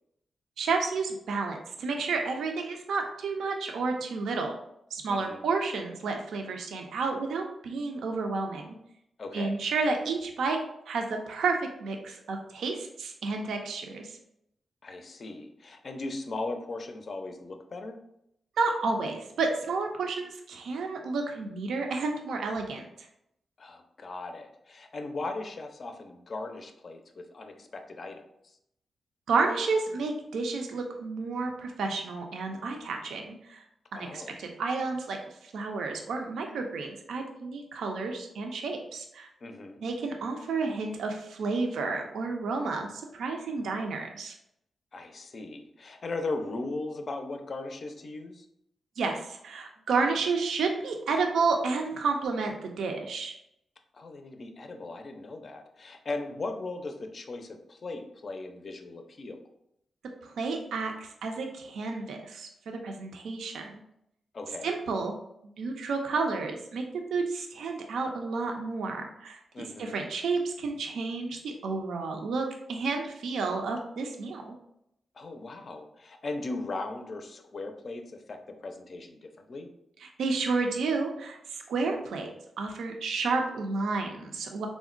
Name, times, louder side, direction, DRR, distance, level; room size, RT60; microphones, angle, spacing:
voice 1, 0.6-4.5 4.9-8.7 9.3-10.6 10.9-14.2 18.6-22.9 29.3-33.6 33.9-39.3 39.8-44.3 49.0-53.3 60.2-63.8 64.6-65.1 65.6-66.8 67.1-74.5 80.0-82.3 82.6-84.7, right 4 dB, 80° right, 3 dB, 0.3 m, -31 dB
voice 2, 5.1-5.4 9.2-9.6 14.8-18.0 23.6-28.5 33.9-34.4 39.4-39.8 44.9-48.5 53.9-59.4 64.3-64.7 69.5-70.0 75.1-79.7, left 3 dB, 55° left, 5 dB, 0.4 m, -38 dB
3.6 x 2.1 x 2.4 m, 0.77 s
supercardioid pair, 45°, 0 cm